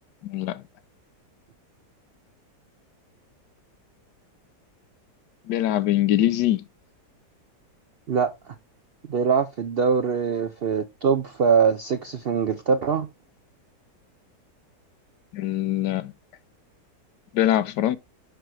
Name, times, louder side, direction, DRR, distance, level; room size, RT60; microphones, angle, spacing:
voice 1, 0.2-0.6 5.5-6.7 15.3-16.1 17.3-18.0, left 13 dB, 85° left, 1.3 m, -23 dB
voice 2, 9.1-13.1, right 6 dB, 70° right, 0.5 m, -23 dB
6.7 x 6.0 x 3.2 m
omnidirectional pair, 1.8 m